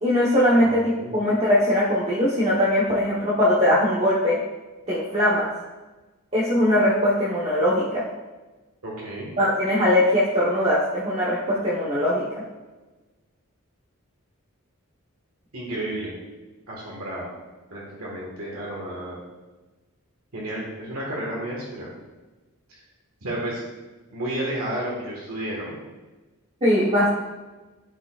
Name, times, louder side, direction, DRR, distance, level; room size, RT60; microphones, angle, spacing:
voice 1, 0.0-4.4 4.9-5.5 6.3-8.0 9.4-12.2 26.6-27.1, left 1 dB, 30° right, -7 dB, 1.1 m, -21 dB
voice 2, 0.6-1.2 8.8-9.3 15.5-16.1 16.7-17.3 17.7-19.2 20.3-21.9 22.7-22.8 23.2-23.6 24.1-25.8, right 1 dB, 80° right, -5 dB, 1.7 m, -32 dB
12.5 x 4.7 x 2.5 m, 1.2 s
head